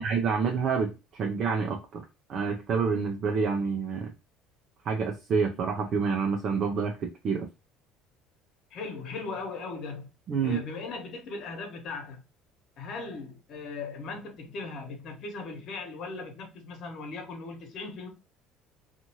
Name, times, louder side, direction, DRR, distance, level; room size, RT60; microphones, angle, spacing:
voice 1, 0.0-2.0 2.3-4.1 4.8-7.5 10.3-10.6, right 5 dB, 50° right, 0.6 m, -28 dB
voice 2, 8.7-10.1 10.4-12.2 12.8-18.1, left 3 dB, 55° left, 1.2 m, -38 dB
2.7 x 2.5 x 2.9 m
supercardioid pair, 100°, 0 cm